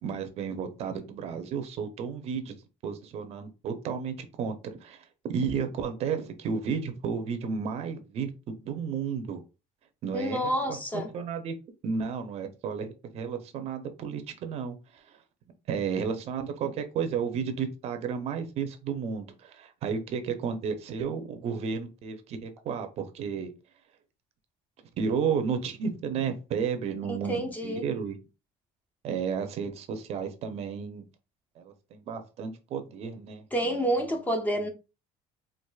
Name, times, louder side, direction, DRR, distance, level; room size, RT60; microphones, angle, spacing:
voice 1, 0.0-2.6 2.8-4.6 4.8-9.4 10.0-11.5 11.8-15.2 15.7-23.5 25.0-28.1 29.0-31.0 31.6-34.0 34.5-34.7, right 6 dB, 45° right, 0.6 m, -33 dB
voice 2, 10.1-11.1 27.1-27.8 33.5-34.7, right 1 dB, 10° left, 0.6 m, -29 dB
4.6 x 2.5 x 2.3 m
cardioid pair, 160°, 15 cm